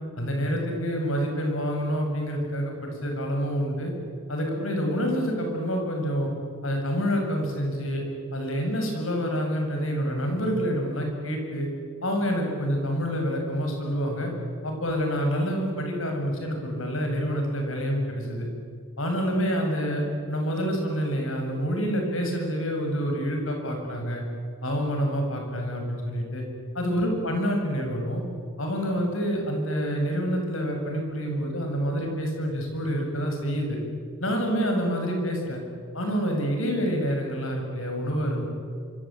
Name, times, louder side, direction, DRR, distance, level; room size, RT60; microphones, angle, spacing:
voice 1, 0.2-3.9 4.3-6.3 6.6-8.0 8.3-11.7 12.0-14.3 14.6-18.5 19.0-24.2 24.6-26.4 26.7-28.2 28.6-33.8 34.2-35.6 35.9-38.5, equal, 80° left, 2 dB, 7.5 m, -27 dB
26.0 x 25.5 x 9.0 m, 2.2 s
head